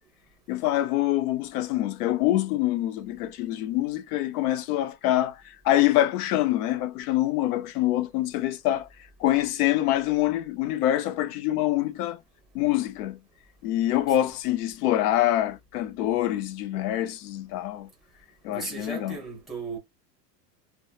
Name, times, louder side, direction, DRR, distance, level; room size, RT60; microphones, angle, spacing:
voice 1, 0.5-8.9 9.2-12.2 12.5-13.2 13.6-17.9 18.4-19.2, left 14 dB, 65° left, 0.6 m, -25 dB
voice 2, 18.5-19.8, right 4 dB, ahead, 0.8 m, -36 dB
2.8 x 2.2 x 2.3 m
supercardioid pair, 155°, 49 cm